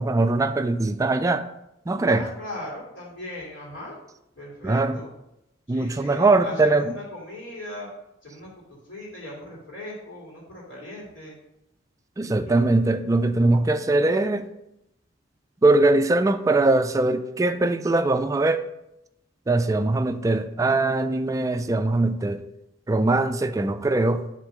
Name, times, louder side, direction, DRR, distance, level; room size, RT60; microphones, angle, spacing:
voice 1, 0.0-1.5 1.9-2.3 4.6-4.9 5.7-6.9 12.2-14.5 15.6-18.6 19.5-22.4 22.9-24.2, right 2 dB, 15° right, 0.3 m, -21 dB
voice 2, 2.1-4.0 4.4-5.1 5.7-7.9 8.2-8.5 8.8-11.4 12.2-12.6, left 1 dB, 80° left, 2.5 m, -39 dB
6.5 x 3.6 x 6.1 m
head